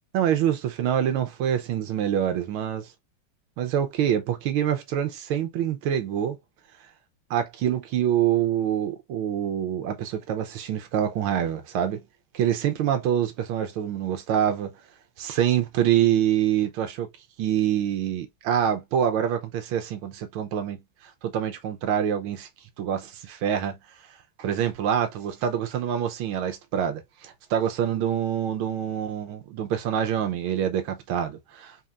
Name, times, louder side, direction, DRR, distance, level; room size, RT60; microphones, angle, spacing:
voice 1, 0.1-2.9 3.6-6.4 7.3-12.0 12.3-14.7 15.2-17.1 17.4-20.8 21.2-22.5 22.8-23.8 24.4-31.7, right 10 dB, 85° right, 1.6 m, -26 dB
4.2 x 4.2 x 2.5 m
omnidirectional pair, 2.2 m